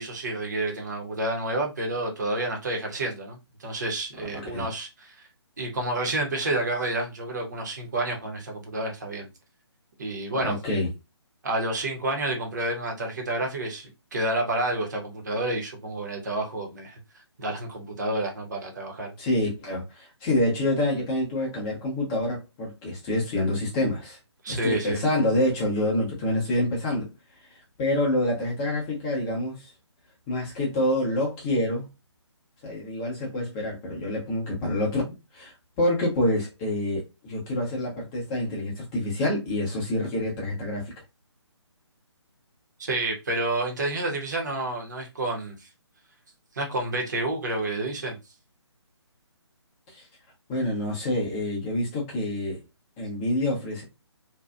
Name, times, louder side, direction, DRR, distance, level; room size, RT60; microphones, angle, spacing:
voice 1, 0.0-5.2 5.6-9.3 10.0-10.6 11.4-17.0 17.4-19.1 24.4-25.0 42.8-45.7 46.5-48.2, right 2 dB, 40° right, 0.8 m, -29 dB
voice 2, 10.3-10.9 19.2-24.2 24.5-27.1 27.8-29.7 30.3-31.9 32.6-40.9 49.9-50.1 50.5-52.6 53.0-53.8, left 1 dB, 15° left, 0.7 m, -27 dB
2.7 x 2.3 x 2.2 m
figure-of-eight pair, 145°, 15 cm